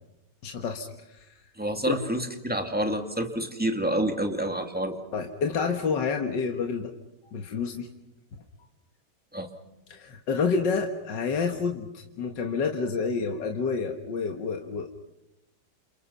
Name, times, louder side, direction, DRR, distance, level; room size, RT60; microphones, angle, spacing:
voice 1, 0.4-1.3 1.9-2.0 5.1-6.9 7.3-7.9 9.9-14.9, left 5 dB, 75° left, 4 dB, 2.2 m, -29 dB
voice 2, 1.6-4.9 9.3-9.5, right 1 dB, 5° right, 5 dB, 2.3 m, -28 dB
29.5 x 28.0 x 5.7 m, 0.90 s
omnidirectional pair, 2.0 m